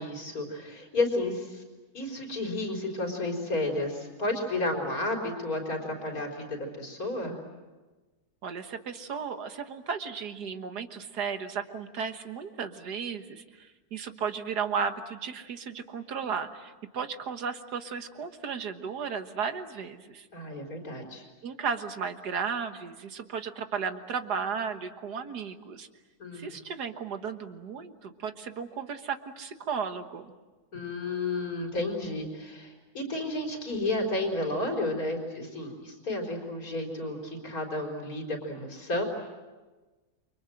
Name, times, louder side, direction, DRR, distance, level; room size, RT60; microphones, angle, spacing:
voice 1, 0.0-1.6 1.9-7.4 20.3-21.2 26.2-26.5 30.7-39.0, left 2 dB, 65° left, 1 dB, 4.7 m, -32 dB
voice 2, 8.4-20.3 21.4-25.9 26.3-30.3, right 6 dB, 80° right, 8 dB, 2.0 m, -34 dB
29.0 x 25.0 x 7.8 m, 1.2 s
omnidirectional pair, 1.7 m